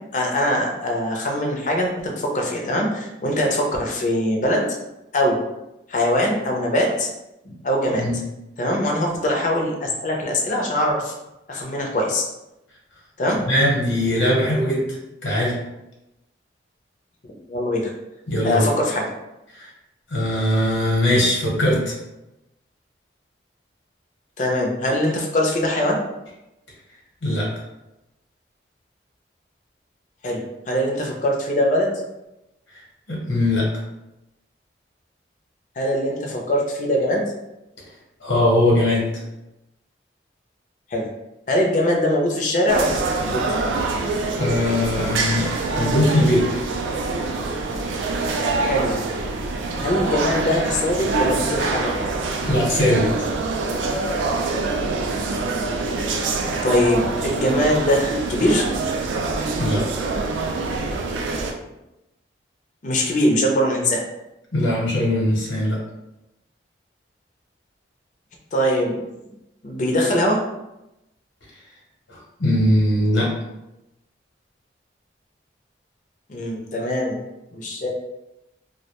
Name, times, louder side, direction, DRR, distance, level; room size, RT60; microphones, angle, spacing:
voice 1, 0.1-4.6 5.1-5.4 5.9-7.1 7.6-8.1 8.6-11.1 11.5-12.2 13.2-13.4 17.5-17.9 18.4-19.1 24.4-26.0 30.2-31.9 35.8-37.2 40.9-41.1 41.5-43.4 48.6-49.0 49.8-51.9 56.6-58.7 62.8-64.0 68.5-69.0 69.6-70.4 76.3-77.2 77.5-77.9, left 1 dB, 40° left, 0 dB, 0.4 m, -22 dB
voice 2, 13.3-14.9 15.2-15.6 18.3-18.7 19.5-19.7 20.1-21.9 27.2-27.5 33.1-33.7 38.2-39.0 44.4-45.5 45.8-46.5 52.5-53.3 59.6-59.8 64.5-65.8 72.1-73.3, left 1 dB, 85° left, -3 dB, 0.8 m, -20 dB
sound 1, 42.7-61.5, right 3 dB, 85° right, 0.3 m, -25 dB
2.2 x 2.1 x 2.9 m, 0.92 s
head